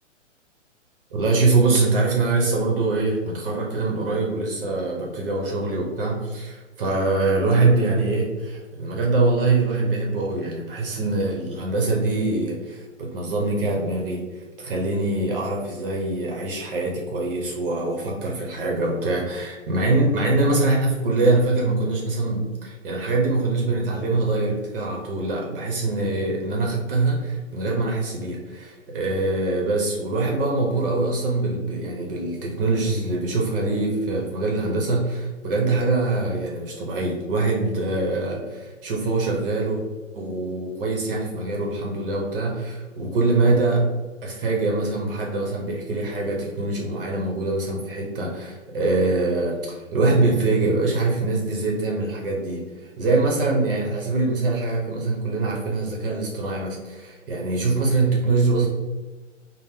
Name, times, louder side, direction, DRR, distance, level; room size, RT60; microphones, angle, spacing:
voice 1, 1.1-39.8 40.1-43.9 44.2-58.7, right 3 dB, 45° right, -1 dB, 0.8 m, -23 dB
3.9 x 2.1 x 3.5 m, 1.3 s
hypercardioid pair, 135°, 37 cm